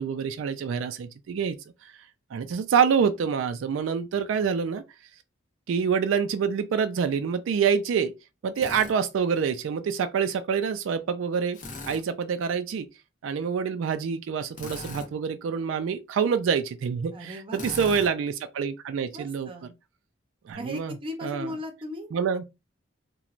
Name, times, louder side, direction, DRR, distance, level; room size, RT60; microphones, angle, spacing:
voice 1, 0.0-1.6 1.8-1.9 2.3-4.8 5.7-8.1 8.4-12.9 13.2-19.7 20.5-21.0 21.2-21.5 22.1-22.4, right 6 dB, 85° right, 0.3 m, -26 dB
Drill, 8.6-8.9 11.5-12.0 14.5-15.1 17.5-18.1, left 2 dB, 45° left, 0.6 m, -38 dB
voice 2, 17.1-17.7 19.1-19.7 20.5-22.1, left 1 dB, 30° right, 0.6 m, -37 dB
3.0 x 2.2 x 2.4 m
head